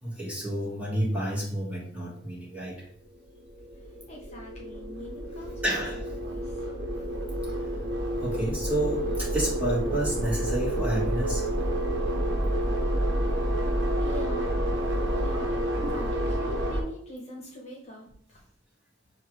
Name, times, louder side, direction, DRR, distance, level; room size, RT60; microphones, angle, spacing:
voice 1, 0.0-2.9 5.6-6.0 8.2-11.5 13.2-13.4 15.8-16.0, right 1 dB, 10° right, -6 dB, 1.6 m, -30 dB
sound 1, 3.1-16.8, right 1 dB, 80° right, 1.0 m, -29 dB
voice 2, 4.1-6.7 14.0-14.5 15.1-18.4, equal, 35° left, -2 dB, 1.0 m, -43 dB
6.8 x 2.5 x 3.1 m, 0.63 s
head